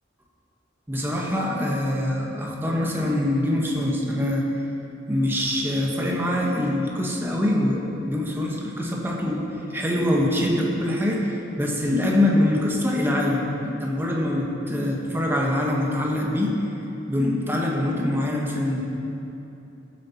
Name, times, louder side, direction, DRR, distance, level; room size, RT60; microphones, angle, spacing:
voice 1, 0.9-4.4 5.1-9.4 9.7-16.6 17.1-18.8, left 1 dB, 10° right, -2 dB, 1.3 m, -24 dB
15.0 x 7.9 x 4.2 m, 2.9 s
head